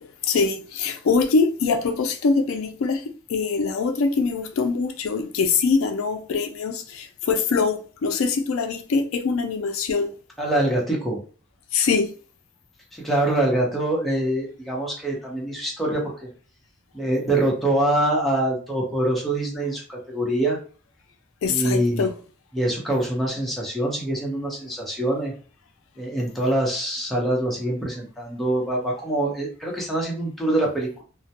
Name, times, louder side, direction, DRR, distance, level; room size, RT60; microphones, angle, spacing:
voice 1, 0.0-3.0 3.3-10.1 11.7-12.1 21.4-22.1, left 4 dB, 85° left, 0.4 m, -23 dB
voice 2, 10.4-11.2 13.0-16.3 16.9-20.6 21.5-22.0 22.5-25.3 26.0-31.0, right 1 dB, ahead, 0.7 m, -24 dB
2.2 x 2.1 x 2.8 m
head